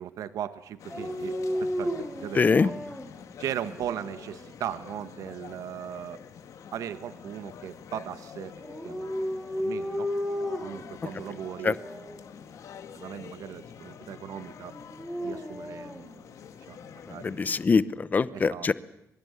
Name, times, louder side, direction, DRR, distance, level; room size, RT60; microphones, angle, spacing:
voice 1, 0.0-2.7 3.4-6.2 6.7-8.5 8.8-9.1 9.6-10.1 10.5-11.8 12.9-14.7 15.2-16.3 16.7-17.6 18.3-18.7, right 10 dB, 90° right, 12 dB, 1.1 m, -38 dB
sound 1, 0.8-17.7, left 7 dB, 70° left, 2.2 m, -47 dB
Dog, 0.9-3.1 3.7-4.5 8.6-10.9 11.7-12.2 14.7-16.0, equal, ahead, 4.0 m, -33 dB
voice 2, 2.3-2.7 11.6-11.7 17.2-18.7, left 4 dB, 30° left, 17 dB, 0.9 m, -23 dB
22.5 x 22.5 x 8.4 m, 0.84 s
cardioid pair, 135°, 6 cm